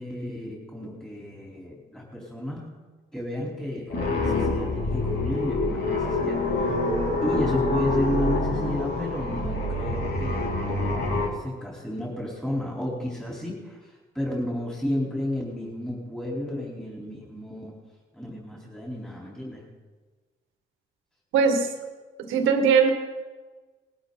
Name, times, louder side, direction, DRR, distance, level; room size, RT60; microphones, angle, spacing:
voice 1, 0.0-2.7 3.1-6.8 7.2-17.8 18.1-19.7, left 1 dB, 5° left, -4 dB, 4.1 m, -32 dB
sound 1, 3.9-11.3, left 2 dB, 55° left, 2.9 m, -26 dB
voice 2, 21.3-21.7 22.2-22.9, right 6 dB, 90° right, 5 dB, 1.9 m, -20 dB
19.5 x 12.5 x 4.1 m, 1.3 s
cardioid pair, 90°, 20 cm